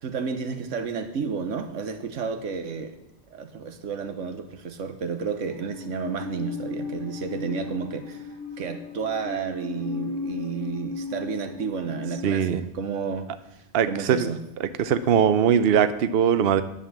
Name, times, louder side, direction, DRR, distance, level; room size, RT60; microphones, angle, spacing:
voice 1, 0.0-3.0 3.3-8.2 8.6-13.3 13.9-14.4, right 5 dB, 90° right, 8 dB, 1.4 m, -31 dB
Musical instrument, 5.5-12.3, left 4 dB, 20° left, 2.6 m, -36 dB
voice 2, 12.2-12.6 13.7-14.3 14.8-16.6, right 8 dB, 60° right, 12 dB, 0.8 m, -21 dB
11.0 x 7.6 x 7.2 m, 0.85 s
omnidirectional pair, 1.2 m